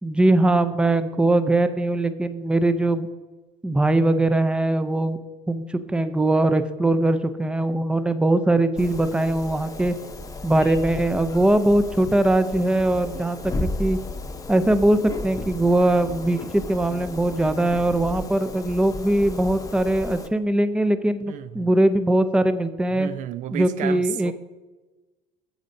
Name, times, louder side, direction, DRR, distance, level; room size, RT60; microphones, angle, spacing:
voice 1, 0.0-3.1 3.6-5.2 5.5-10.0 10.4-14.0 14.5-23.1 23.5-24.3, right 1 dB, 5° right, 0.5 m, -21 dB
sound 1, 8.8-20.3, left 2 dB, 20° left, 0.8 m, -34 dB
voice 2, 21.3-21.7 22.9-24.3, right 12 dB, 55° right, 0.4 m, -32 dB
14.0 x 7.5 x 2.7 m
supercardioid pair, 95°, 16 cm